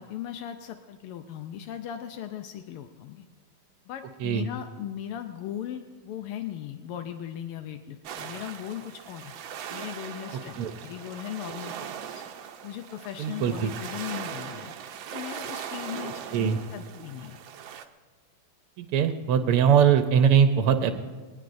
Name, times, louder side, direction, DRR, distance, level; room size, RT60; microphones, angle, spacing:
voice 1, 0.0-3.3 3.9-9.4 9.7-11.7 12.1-12.2 12.6-14.7 15.1-17.4, left 10 dB, 85° left, 7 dB, 1.6 m, -38 dB
sound 1, 8.0-17.8, right 8 dB, 70° right, 1.4 m, -40 dB
voice 2, 13.2-13.7 16.3-16.6 18.8-21.0, right 8 dB, 85° right, 8 dB, 1.6 m, -21 dB
21.0 x 19.0 x 2.6 m, 1.4 s
omnidirectional pair, 2.4 m